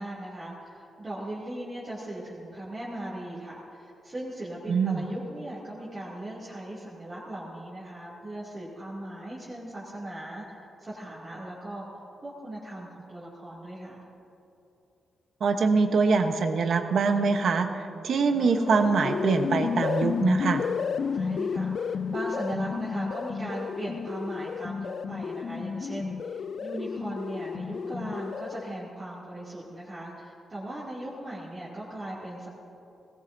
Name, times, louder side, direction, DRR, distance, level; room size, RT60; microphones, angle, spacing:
voice 1, 0.0-14.0 21.1-32.5, right 1 dB, 25° right, -10 dB, 2.6 m, -38 dB
voice 2, 4.7-5.0 15.4-20.6, right 4 dB, 55° right, 6 dB, 1.0 m, -24 dB
sound 1, 18.3-28.8, left 6 dB, 50° left, 0.3 m, -32 dB
19.0 x 19.0 x 2.7 m, 3.0 s
wide cardioid pair, 160°, 0 cm